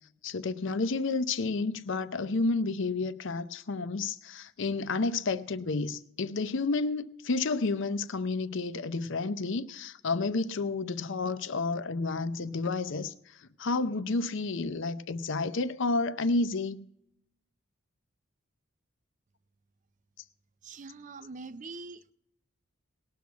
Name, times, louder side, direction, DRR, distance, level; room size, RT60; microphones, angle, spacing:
voice 1, 0.2-16.8, left 3 dB, 60° left, 0.6 m, -30 dB
voice 2, 20.6-22.1, right 3 dB, 35° right, 0.5 m, -43 dB
19.0 x 6.3 x 8.3 m
head